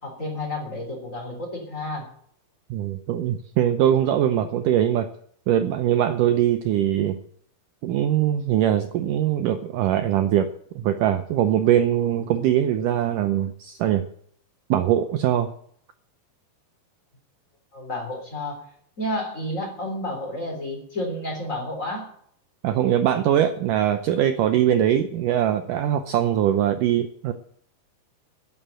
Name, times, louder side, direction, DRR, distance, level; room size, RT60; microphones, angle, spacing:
voice 1, 0.0-2.1 17.7-18.6 19.0-22.1, left 1 dB, 20° left, 1 dB, 3.5 m, -31 dB
voice 2, 2.7-5.1 5.5-7.2 7.8-10.5 10.8-14.1 14.7-15.5 22.6-27.3, right 11 dB, 75° right, 9 dB, 2.0 m, -22 dB
11.0 x 9.2 x 8.8 m, 0.63 s
omnidirectional pair, 4.4 m